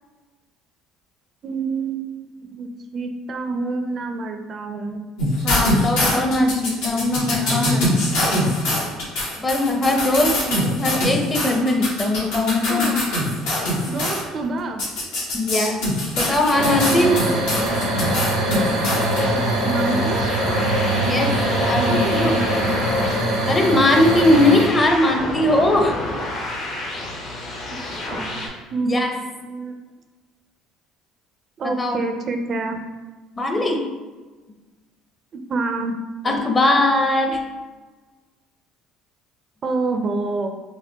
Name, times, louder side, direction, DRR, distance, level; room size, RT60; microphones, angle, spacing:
voice 1, 1.4-5.0 6.0-6.4 7.3-8.0 10.2-10.7 12.7-13.1 13.8-14.8 16.6-17.0 17.2-17.4 19.3-20.2 21.9-22.9 27.9-28.3 28.7-29.8 31.6-32.9 35.3-36.0 39.6-40.5, right 3 dB, 45° right, 5 dB, 0.4 m, -28 dB
sound 1, 5.2-14.2 14.8-19.2, left 1 dB, 85° left, 1.0 m, -23 dB
voice 2, 5.4-7.9 9.4-10.4 10.8-12.9 15.3-15.8 16.2-17.1 21.0-21.3 21.6-22.4 23.4-26.0 28.8-29.1 31.6-32.0 33.4-33.8 36.2-37.4, left 1 dB, 25° left, 3 dB, 0.6 m, -20 dB
sound 2, 16.5-24.7, right 1 dB, 90° right, 0.8 m, -22 dB
sound 3, 17.5-28.5, left 1 dB, 60° left, 0.9 m, -31 dB
4.6 x 2.1 x 2.7 m, 1.3 s
supercardioid pair, 85°, 0 cm